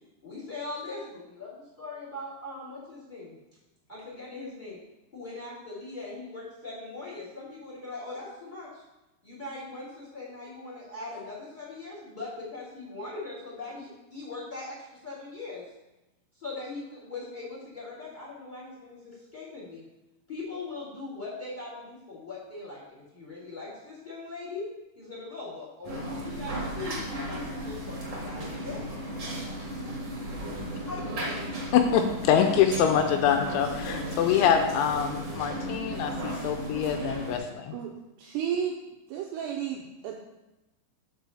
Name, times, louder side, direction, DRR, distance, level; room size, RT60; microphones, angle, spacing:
voice 1, 0.2-3.4 3.9-4.8 5.1-8.8 9.2-14.7 15.0-15.6 16.4-19.8 20.3-24.7 24.9-28.9 30.9-31.1, left 3 dB, 20° left, -7 dB, 1.3 m, -40 dB
sound 1, 25.8-37.4, equal, 55° right, 1.2 m, -35 dB
voice 2, 31.7-37.7, left 8 dB, 80° left, 5 dB, 2.9 m, -25 dB
voice 3, 38.2-38.8 39.1-40.1, right 8 dB, 85° right, 1 dB, 2.5 m, -32 dB
6.9 x 4.8 x 6.7 m, 0.98 s
omnidirectional pair, 5.7 m